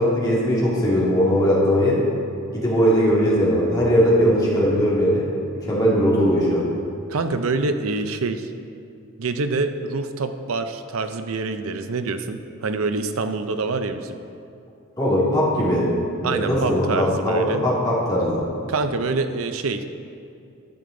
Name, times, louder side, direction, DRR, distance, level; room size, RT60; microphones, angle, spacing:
voice 1, 0.0-2.0 2.5-5.2 5.7-6.7 15.0-15.9 16.2-18.5, equal, 15° left, -7 dB, 2.2 m, -19 dB
voice 2, 7.1-8.5 9.2-14.2 16.2-17.6 18.7-19.8, right 3 dB, 90° right, 8 dB, 0.6 m, -26 dB
12.0 x 6.9 x 3.8 m, 2.5 s
head